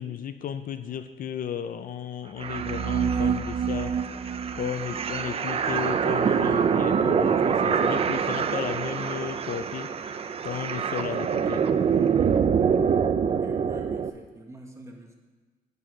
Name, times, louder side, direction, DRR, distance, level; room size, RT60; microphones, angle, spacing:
voice 1, 0.0-3.9 4.5-9.9 10.4-11.6, left 9 dB, 60° left, 10 dB, 0.5 m, -34 dB
sound 1, 2.4-14.1, right 7 dB, 40° right, 0.5 m, -25 dB
voice 2, 13.3-15.2, right 2 dB, 15° right, 1 dB, 1.5 m, -44 dB
9.0 x 6.7 x 6.0 m, 1.4 s
cardioid pair, 120°, 16 cm